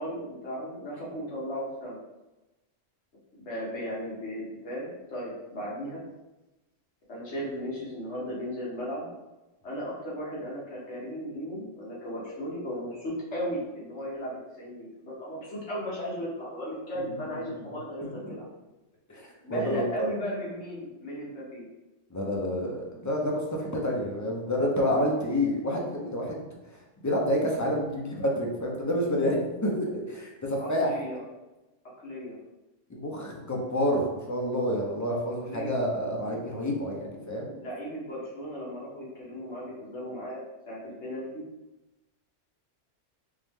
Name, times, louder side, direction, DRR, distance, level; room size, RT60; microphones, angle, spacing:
voice 1, 0.0-2.0 3.4-6.0 7.1-9.1 9.6-18.4 19.4-21.6 28.1-28.2 30.6-31.2 32.0-32.4 35.5-35.8 37.3-40.4 40.7-41.4, equal, 65° left, -6 dB, 1.6 m, -36 dB
voice 2, 18.0-18.4 19.1-20.1 22.1-26.4 26.7-30.9 32.9-37.5, equal, 25° left, -2 dB, 0.4 m, -29 dB
3.7 x 3.1 x 3.5 m, 1.0 s
omnidirectional pair, 1.3 m